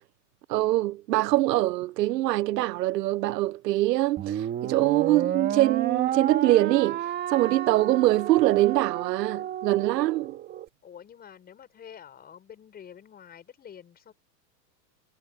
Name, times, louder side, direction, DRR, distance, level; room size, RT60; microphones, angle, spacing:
voice 1, 0.5-10.4, right 16 dB, 80° right, 0.8 m, -24 dB
sound 1, 4.2-10.7, right 10 dB, 20° right, 1.9 m, -31 dB
voice 2, 10.8-14.1, left 8 dB, 20° left, 6.4 m, -47 dB
supercardioid pair, 155°, 48 cm